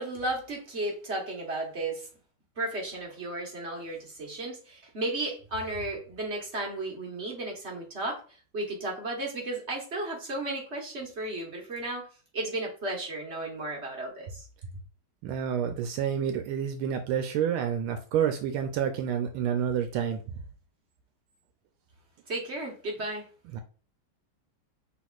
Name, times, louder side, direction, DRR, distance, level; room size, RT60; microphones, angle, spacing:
voice 1, 0.0-2.1 2.6-8.2 8.5-12.1 12.3-14.5 22.3-23.3, right 2 dB, 40° right, 0 dB, 1.2 m, -34 dB
voice 2, 15.2-20.4 23.5-23.6, right 8 dB, 80° right, 6 dB, 1.4 m, -29 dB
6.1 x 3.6 x 2.4 m, 0.38 s
omnidirectional pair, 2.3 m